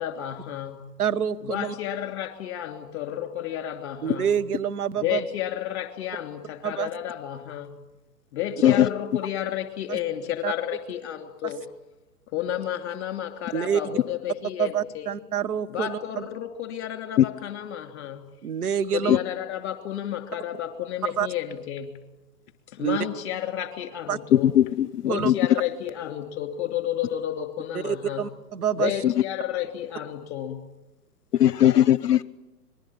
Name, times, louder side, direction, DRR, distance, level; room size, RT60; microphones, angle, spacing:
voice 1, 0.0-0.8 1.4-4.4 5.0-7.8 8.3-11.7 12.3-15.1 15.7-18.3 18.9-22.0 22.7-24.5 25.0-28.2 28.8-30.6, left 11 dB, 40° left, 8 dB, 3.1 m, -31 dB
voice 2, 1.0-1.7 4.0-5.2 6.6-6.9 9.9-10.0 10.4-10.5 13.5-13.8 14.6-16.0 18.4-19.2 21.2-21.3 22.8-23.0 24.1-24.2 25.1-25.3 27.7-28.9, right 8 dB, 65° right, 11 dB, 1.3 m, -27 dB
voice 3, 24.3-25.3 29.0-29.1 31.3-32.2, left 11 dB, 70° left, 21 dB, 0.8 m, -19 dB
25.5 x 21.0 x 8.8 m, 0.97 s
figure-of-eight pair, 120°, 48 cm